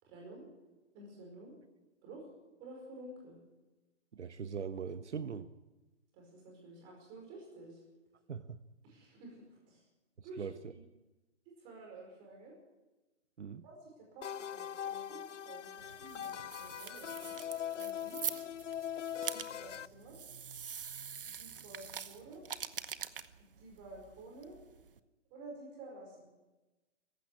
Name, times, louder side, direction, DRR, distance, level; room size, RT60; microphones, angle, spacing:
voice 1, 0.0-0.5 0.9-1.5 2.0-2.3 2.6-3.4 6.1-7.8 8.8-9.8 10.2-10.5 10.7-10.8 11.4-12.5 13.6-17.4 17.7-18.2 19.3-20.2 21.4-22.4 23.6-24.6 25.3-26.3, right 2 dB, 15° right, 0 dB, 5.0 m, -51 dB
voice 2, 4.1-5.5 8.3-8.6 10.4-10.7 13.4-13.6, right 6 dB, 75° right, 10 dB, 1.2 m, -41 dB
sound 1, 14.2-19.9, left 10 dB, 90° left, 0.7 m, -41 dB
sound 2, 15.8-25.0, right 7 dB, 50° right, 1.1 m, -45 dB
17.0 x 15.5 x 10.0 m, 1.1 s
hypercardioid pair, 175°, 36 cm